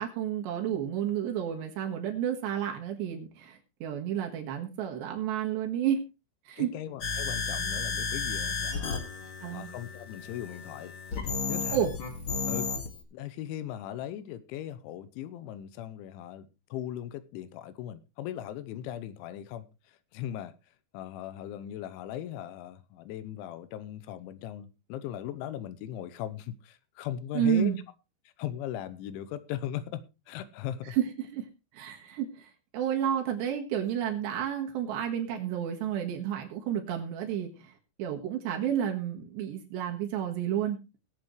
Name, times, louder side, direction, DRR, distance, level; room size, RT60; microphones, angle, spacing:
voice 1, 0.0-6.0 6.5-6.7 9.4-9.7 11.7-11.9 27.3-27.8 30.9-31.4 31.7-37.7 38.0-40.8, right 9 dB, 70° right, 2 dB, 3.5 m, -31 dB
voice 2, 6.6-9.0 9.5-10.9 11.5-11.9 12.5-12.7 13.1-19.7 20.1-20.5 20.9-27.8 28.4-31.0, left 11 dB, 85° left, 14 dB, 3.2 m, -38 dB
sound 1, 7.0-13.0, left 5 dB, 60° left, 1.3 m, -33 dB
20.5 x 7.8 x 3.1 m, 0.28 s
omnidirectional pair, 5.4 m